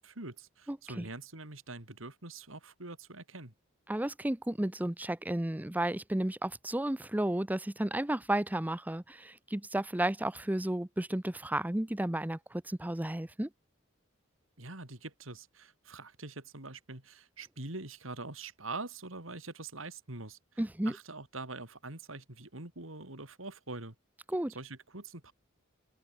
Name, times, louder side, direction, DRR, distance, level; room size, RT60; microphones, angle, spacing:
voice 1, 0.0-3.5 14.6-24.0 24.5-25.3, right 3 dB, 85° right, 4.0 m, -44 dB
voice 2, 0.7-1.1 3.9-13.5 20.6-21.0 24.3-24.5, right 1 dB, 10° right, 0.6 m, -33 dB
open air
head